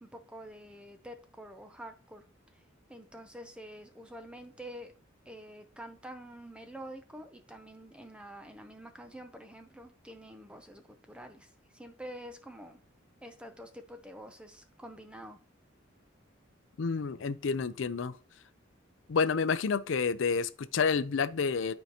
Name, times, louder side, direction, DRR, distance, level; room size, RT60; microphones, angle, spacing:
voice 1, 0.0-2.2 2.5-2.6 2.9-4.9 5.3-12.8 13.2-15.4, equal, 5° right, 0.5 m, -47 dB
voice 2, 16.8-18.1 19.1-21.7, left 5 dB, 70° left, 0.5 m, -29 dB
11.5 x 4.6 x 2.9 m
head